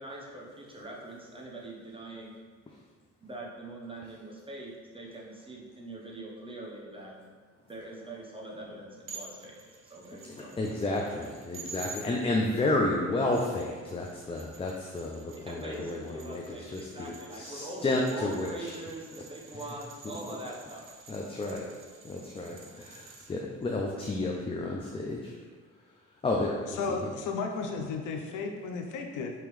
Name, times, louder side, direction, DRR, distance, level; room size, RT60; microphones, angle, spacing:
voice 1, 0.0-2.4 3.2-7.1 7.6-9.6 9.8-10.5 15.5-20.8, right 1 dB, 15° right, -3 dB, 1.0 m, -43 dB
sound 1, 9.1-12.0 13.1-23.3, right 4 dB, 45° right, 0.7 m, -49 dB
voice 2, 10.1-18.7 20.0-20.2 21.1-21.7 22.0-25.3 26.2-27.0, left 2 dB, 20° left, -1 dB, 0.5 m, -31 dB
voice 3, 26.8-29.3, left 4 dB, 80° left, 3 dB, 0.6 m, -33 dB
5.4 x 2.9 x 3.2 m, 1.5 s
cardioid pair, 90°, 30 cm